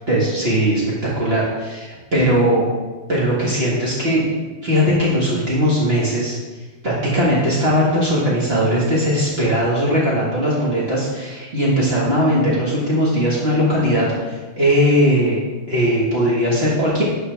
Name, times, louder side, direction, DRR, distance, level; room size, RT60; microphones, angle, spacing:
voice 1, 0.1-2.7 3.1-4.2 4.6-6.4 6.8-17.0, equal, 60° right, -6 dB, 1.9 m, -19 dB
12.5 x 6.1 x 3.4 m, 1.3 s
omnidirectional pair, 1.2 m